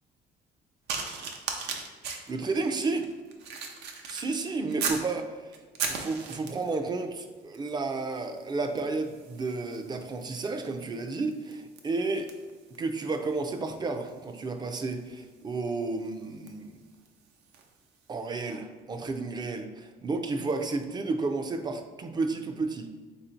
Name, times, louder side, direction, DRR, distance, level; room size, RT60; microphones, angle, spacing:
sound 1, 0.9-5.1 5.5-6.8 7.5-7.8 8.1-17.8 18.5-18.6, right 5 dB, 80° right, 0.6 m, -39 dB
voice 1, 2.3-3.1 4.1-5.3 5.9-12.3 12.8-16.8 18.1-23.0, right 3 dB, 25° right, 6 dB, 0.4 m, -32 dB
3.6 x 2.7 x 4.3 m, 1.4 s
cardioid pair, 110°, 17 cm